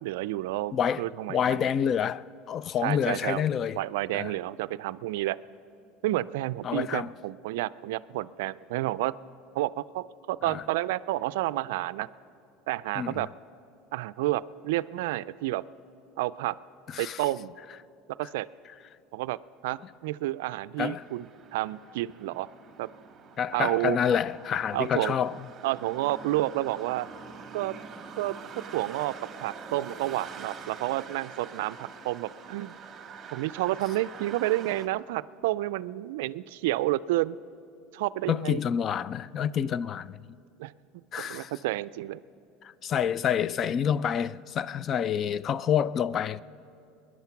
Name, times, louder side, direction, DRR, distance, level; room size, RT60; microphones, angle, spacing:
voice 1, 0.0-1.6 2.8-3.5 3.7-5.4 6.0-9.2 9.5-12.1 12.7-13.3 13.9-15.6 16.2-16.6 17.0-17.5 18.2-18.5 19.1-19.4 19.6-22.5 22.8-22.9 23.5-24.0 24.7-25.2 25.6-27.1 27.5-27.8 28.2-28.4 28.7-32.7 33.3-37.4 37.9-38.6 40.6-42.2, right 16 dB, 80° right, 0.3 m, -30 dB
voice 2, 0.7-1.0 1.3-3.8 4.1-4.3 6.6-7.1 10.4-10.6 13.0-13.2 16.9-17.2 20.8-21.0 23.4-25.3 38.3-40.2 41.1-41.5 42.8-46.4, left 8 dB, 40° left, 0.3 m, -28 dB
sound 1, 20.9-34.9, right 5 dB, 30° right, 1.5 m, -45 dB
20.5 x 11.0 x 5.9 m
supercardioid pair, 115°, 0 cm